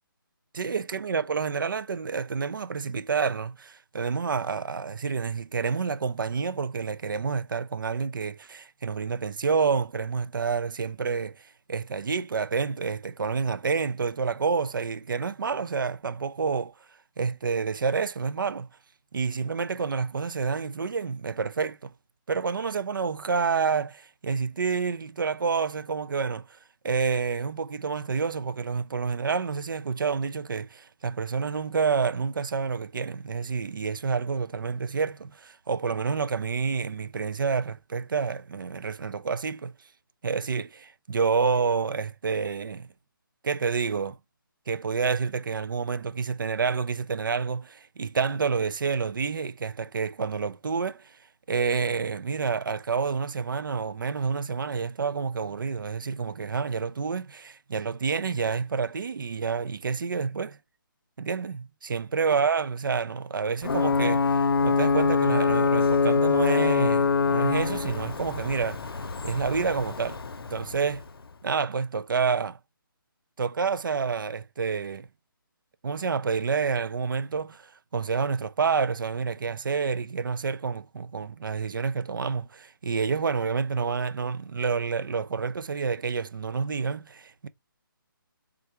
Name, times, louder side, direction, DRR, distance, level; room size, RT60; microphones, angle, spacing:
voice 1, 0.5-11.3 11.7-16.7 17.2-18.7 19.1-21.9 22.3-26.4 26.8-39.7 40.2-42.9 43.4-44.2 44.7-51.1 51.5-60.6 61.2-68.8 69.2-70.2 70.5-71.0 71.4-72.6 73.4-75.1 75.8-87.5, right 5 dB, 65° right, 0.5 m, -28 dB
Ocean / Boat Water vehicle / Alarm, 63.6-71.2, left 4 dB, 85° left, 0.6 m, -24 dB
3.7 x 2.2 x 4.3 m
hypercardioid pair, 175°, 12 cm